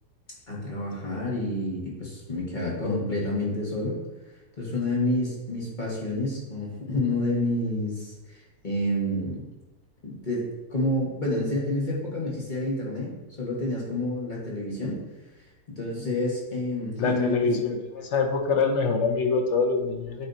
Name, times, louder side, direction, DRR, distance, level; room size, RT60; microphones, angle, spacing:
voice 1, 0.5-4.0 4.6-9.5 10.0-15.0 15.7-17.3, left 1 dB, 30° left, -4 dB, 1.6 m, -29 dB
voice 2, 17.0-20.3, left 4 dB, 60° left, 4 dB, 0.8 m, -25 dB
9.6 x 3.2 x 4.0 m, 1.1 s
omnidirectional pair, 1.9 m